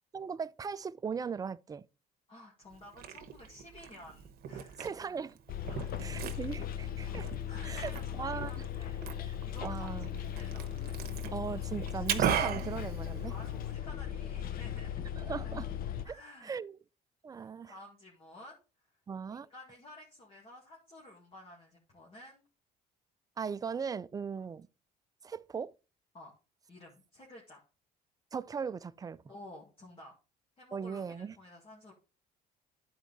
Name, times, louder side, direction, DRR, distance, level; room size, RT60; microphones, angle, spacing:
voice 1, 0.1-1.8 4.8-5.4 6.0-8.5 9.2-9.3 9.6-10.1 11.3-13.3 15.2-15.7 16.1-16.2 16.4-16.8 17.2-17.7 19.1-19.5 23.4-24.7 25.2-25.7 28.3-29.2 30.7-31.4, right 6 dB, 20° right, 0.4 m, -38 dB
voice 2, 2.3-4.9 5.7-6.1 7.4-10.7 13.3-15.1 16.0-16.6 17.4-18.6 19.3-22.4 26.1-26.3 26.7-27.6 29.3-30.1 30.6-31.9, left 1 dB, 35° left, 1.9 m, -53 dB
Liquid, 2.7-13.7, right 9 dB, 65° right, 1.1 m, -39 dB
Bus, 5.5-16.1, left 10 dB, 60° left, 0.7 m, -38 dB
10.5 x 4.5 x 3.9 m
cardioid pair, 110°, 17 cm